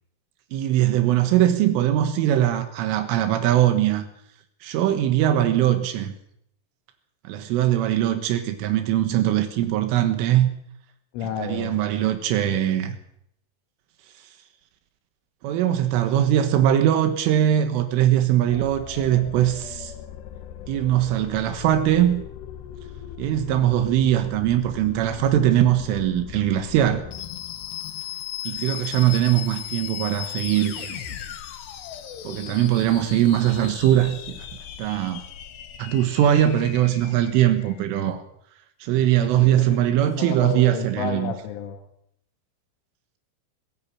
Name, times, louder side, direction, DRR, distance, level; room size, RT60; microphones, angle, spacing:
voice 1, 0.5-4.0 4.6-6.1 7.3-10.5 11.4-13.0 15.4-19.9 20.7-22.2 23.2-27.0 28.5-31.0 32.3-34.5 34.8-35.2 35.8-38.2 38.8-41.3, right 12 dB, 85° right, 8 dB, 3.9 m, -21 dB
voice 2, 11.1-11.8 39.0-41.8, left 8 dB, 85° left, 3 dB, 4.1 m, -32 dB
sound 1, 18.5-37.8, left 11 dB, 65° left, 3.3 m, -38 dB
20.5 x 16.5 x 8.8 m, 0.73 s
omnidirectional pair, 5.6 m